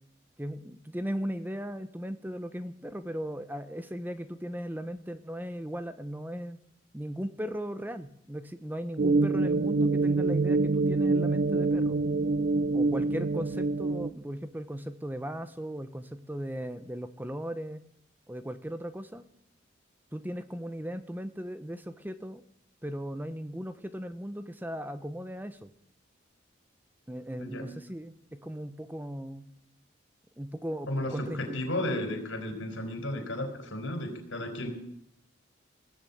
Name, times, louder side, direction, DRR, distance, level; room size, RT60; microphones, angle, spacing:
voice 1, 0.4-6.6 6.9-12.0 12.7-17.8 18.3-19.2 20.1-22.4 22.8-25.7 27.1-29.5 30.4-31.6, equal, 10° right, 11 dB, 0.7 m, -37 dB
sound 1, 9.0-14.1, right 3 dB, 50° right, 0.5 m, -26 dB
voice 2, 30.9-34.7, left 1 dB, 90° left, 4 dB, 4.7 m, -33 dB
19.5 x 7.1 x 8.6 m, 0.75 s
head